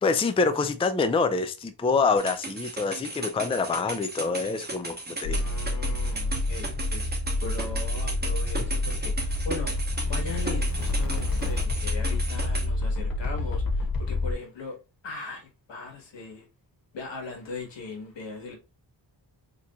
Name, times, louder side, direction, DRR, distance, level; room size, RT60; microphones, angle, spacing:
voice 1, 0.0-5.4, left 4 dB, 15° left, 0.4 m, -26 dB
sound 1, 2.2-12.7, right 3 dB, 20° right, 1.2 m, -36 dB
voice 2, 5.1-7.1 7.4-9.8 10.0-14.8 15.0-16.5 16.9-18.5, left 3 dB, 80° left, 1.4 m, -39 dB
sound 2, 5.2-14.3, left 2 dB, 50° left, 0.7 m, -28 dB
4.0 x 2.9 x 2.3 m
cardioid pair, 70°, 43 cm